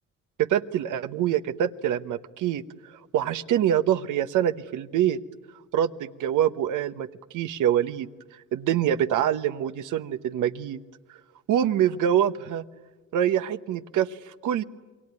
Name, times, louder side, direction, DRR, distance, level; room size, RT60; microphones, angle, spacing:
voice 1, 0.4-2.6 2.9-5.2 5.7-7.1 7.3-8.1 8.5-10.8 11.5-12.6 13.1-14.6, right 10 dB, 85° right, 11 dB, 1.1 m, -25 dB
27.5 x 22.5 x 9.6 m, 1.2 s
cardioid pair, 90°, 30 cm